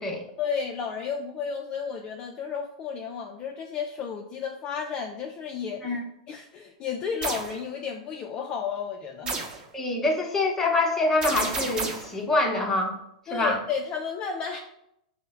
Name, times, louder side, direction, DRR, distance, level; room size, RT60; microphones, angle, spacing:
voice 1, 0.4-6.0 6.3-9.4 13.3-14.6, left 6 dB, 35° left, 2 dB, 0.4 m, -32 dB
sound 1, 7.2-7.5 9.3-9.6 11.2-12.1, right 3 dB, 25° right, 0.9 m, -30 dB
voice 2, 9.7-12.9 13.3-13.6, left 2 dB, 10° left, 0 dB, 0.8 m, -25 dB
5.4 x 2.1 x 3.4 m, 0.79 s
hypercardioid pair, 115°, 3 cm